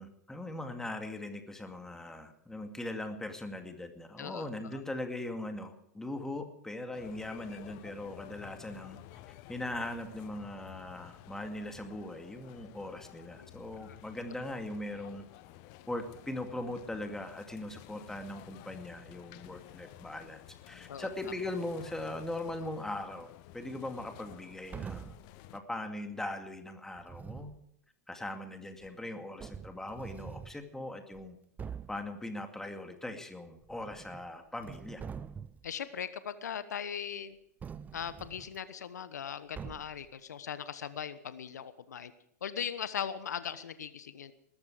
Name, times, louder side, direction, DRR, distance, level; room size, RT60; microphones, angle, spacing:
voice 1, 0.0-9.0 9.5-15.3 15.9-23.3 23.5-25.1 25.5-27.5 28.1-31.4 31.9-35.0, left 1 dB, 5° left, 5 dB, 2.3 m, -40 dB
sound 1, 6.9-25.6, left 14 dB, 45° left, 1.2 m, -52 dB
sound 2, 24.7-25.3 27.0-27.6 28.8-28.9 29.4-30.6 31.1-31.2 31.6-32.1 33.6-34.3 34.6-35.7 37.6-38.6 39.6-40.1, right 7 dB, 15° right, 0.6 m, -44 dB
voice 2, 35.6-37.4 37.9-42.1 42.4-44.3, left 8 dB, 75° left, 13 dB, 1.1 m, -39 dB
19.5 x 14.0 x 5.0 m, 0.73 s
hypercardioid pair, 105°, 9 cm